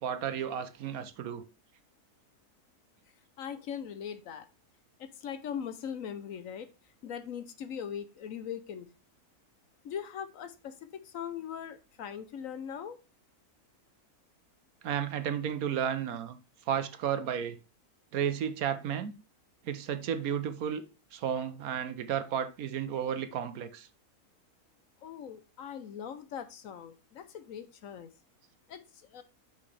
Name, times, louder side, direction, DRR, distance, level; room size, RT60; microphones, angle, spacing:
voice 1, 0.0-1.5 14.8-16.4 16.7-17.6 18.1-19.1 19.6-20.8 21.1-23.9, right 8 dB, 70° right, 1.2 m, -33 dB
voice 2, 3.4-4.4 5.0-6.7 7.0-8.9 9.8-13.0 25.0-28.1 28.7-29.2, left 8 dB, 65° left, 1.0 m, -40 dB
6.1 x 5.9 x 3.2 m
omnidirectional pair, 1.6 m